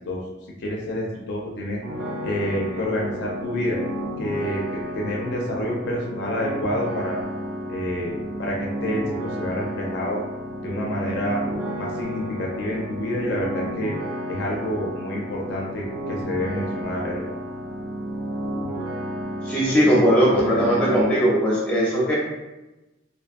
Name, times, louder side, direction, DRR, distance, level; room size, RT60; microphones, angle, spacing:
voice 1, 0.6-1.8 2.2-3.8 4.2-7.2 7.7-10.2 10.6-11.4 11.8-13.9 14.3-17.3, left 1 dB, 55° left, -2 dB, 0.4 m, -28 dB
sound 1, 1.8-21.0, equal, 85° right, 0.6 m, -32 dB
voice 2, 19.4-22.1, equal, 5° left, -6 dB, 0.7 m, -19 dB
2.5 x 2.3 x 2.5 m, 1.1 s
head